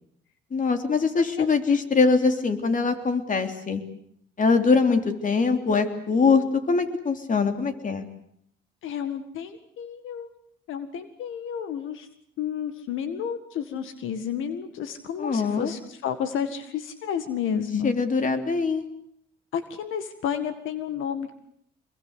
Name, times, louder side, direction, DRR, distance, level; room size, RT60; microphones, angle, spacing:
voice 1, 0.5-3.8 4.4-8.0 15.2-15.7 17.8-18.8, left 4 dB, 40° left, 7 dB, 3.5 m, -23 dB
voice 2, 8.8-10.3 10.7-12.1 12.4-17.9 19.5-21.3, left 8 dB, 85° left, 10 dB, 1.9 m, -31 dB
25.5 x 22.0 x 8.2 m, 0.70 s
cardioid pair, 90°, 20 cm